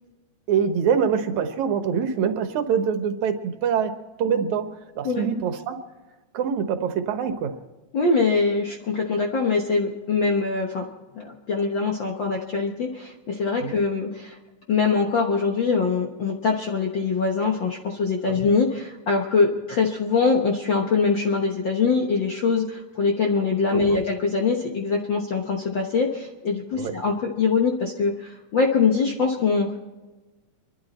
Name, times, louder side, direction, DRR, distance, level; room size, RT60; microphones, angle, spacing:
voice 1, 0.5-3.9 4.2-4.7 5.0-5.8 6.3-7.5 13.6-13.7 18.3-18.4 23.7-23.8 26.8-26.9, right 7 dB, 75° right, 8 dB, 2.4 m, -24 dB
voice 2, 7.9-10.9 11.1-14.4 14.7-29.8, left 4 dB, 55° left, 1 dB, 1.4 m, -23 dB
25.5 x 12.0 x 4.2 m, 1.2 s
omnidirectional pair, 3.5 m